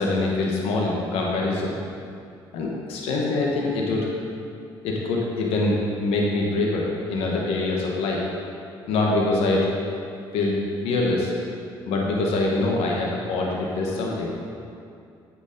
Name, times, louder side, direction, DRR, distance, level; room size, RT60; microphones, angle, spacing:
voice 1, 0.0-1.7 2.5-4.1 4.8-8.2 8.9-9.7 10.3-10.6 10.8-11.3 11.9-14.3, left 2 dB, 80° left, -2 dB, 1.2 m, -24 dB
8.3 x 5.2 x 5.2 m, 2.5 s
supercardioid pair, 80°, 10 cm